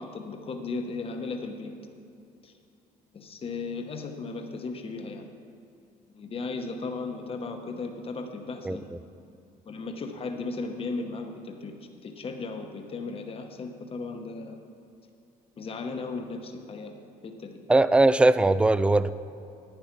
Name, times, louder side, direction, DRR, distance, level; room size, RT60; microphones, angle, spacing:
voice 1, 0.0-1.7 2.4-2.5 3.1-5.2 6.1-8.9 9.7-11.7 12.0-14.6 15.6-16.9 17.2-17.6, left 3 dB, 35° left, 4 dB, 1.1 m, -36 dB
voice 2, 17.7-19.1, right 2 dB, 5° right, 15 dB, 0.3 m, -20 dB
10.5 x 8.9 x 6.0 m, 2.7 s
cardioid pair, 110°, 17 cm